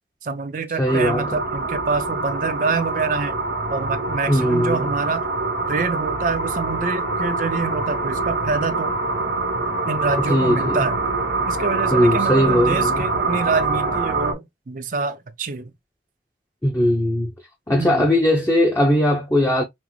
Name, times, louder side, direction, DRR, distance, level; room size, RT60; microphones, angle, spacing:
voice 1, 0.2-3.4 3.7-5.3 5.7-9.0 9.9-11.0 11.5-15.7 17.8-18.1, right 4 dB, 45° right, 0.5 m, -26 dB
voice 2, 0.8-1.3 4.3-4.9 10.3-10.8 11.9-13.0 16.6-17.3 17.7-19.6, left 1 dB, 15° left, 0.6 m, -19 dB
sound 1, 0.9-14.3, right 3 dB, 85° right, 1.0 m, -25 dB
5.8 x 2.0 x 3.0 m
head